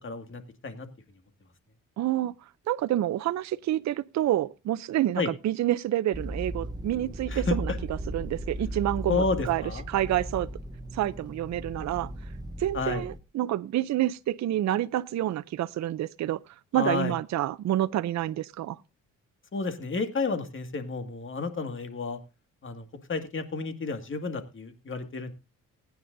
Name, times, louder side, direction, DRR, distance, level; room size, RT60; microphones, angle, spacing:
voice 1, 0.0-0.9 5.2-5.3 7.3-7.8 9.1-9.8 12.7-13.1 16.7-17.1 19.5-22.2 22.6-25.3, left 4 dB, 40° left, 2.1 m, -31 dB
voice 2, 2.0-2.3 2.7-7.7 8.1-10.5 10.9-12.1 12.6-16.4 16.7-18.8, right 13 dB, 60° right, 0.6 m, -28 dB
sound 1, 6.1-13.2, right 1 dB, 15° right, 0.7 m, -36 dB
20.0 x 9.5 x 2.6 m
cardioid pair, 80°, 32 cm